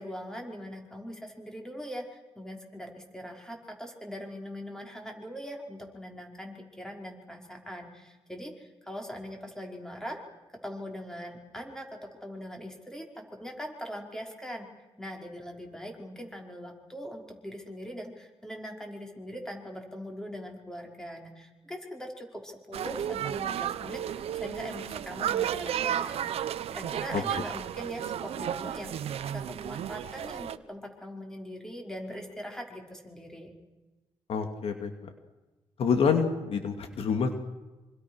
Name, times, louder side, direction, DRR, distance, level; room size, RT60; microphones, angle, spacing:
voice 1, 0.0-10.2 10.6-14.7 15.0-33.5, equal, 5° left, 2 dB, 5.3 m, -41 dB
sound 1, 22.7-30.6, right 10 dB, 90° right, 0.9 m, -33 dB
voice 2, 27.1-27.4 34.3-35.1 35.8-37.4, left 6 dB, 75° left, 6 dB, 2.6 m, -27 dB
26.5 x 25.5 x 6.4 m, 1.1 s
cardioid pair, 90°, 10 cm